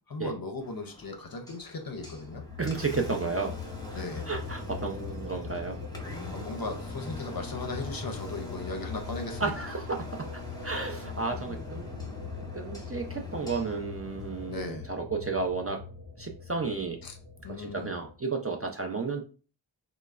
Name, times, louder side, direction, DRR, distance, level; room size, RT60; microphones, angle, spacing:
voice 1, 0.1-2.4 3.9-4.3 6.3-9.5 14.5-14.9 17.0-17.2 17.4-17.9, left 3 dB, 50° left, 5 dB, 0.5 m, -37 dB
Engine, 0.6-14.6, left 1 dB, 10° left, 0.6 m, -45 dB
sound 1, 2.0-18.1, left 4 dB, 85° right, 0.8 m, -41 dB
voice 2, 2.6-3.5 3.9-5.8 9.4-10.3 10.6-11.9 12.5-15.8 16.2-17.0 17.6-19.2, right 4 dB, 35° right, 3 dB, 0.4 m, -32 dB
3.2 x 2.0 x 2.3 m, 0.36 s
wide cardioid pair, 40°, 47 cm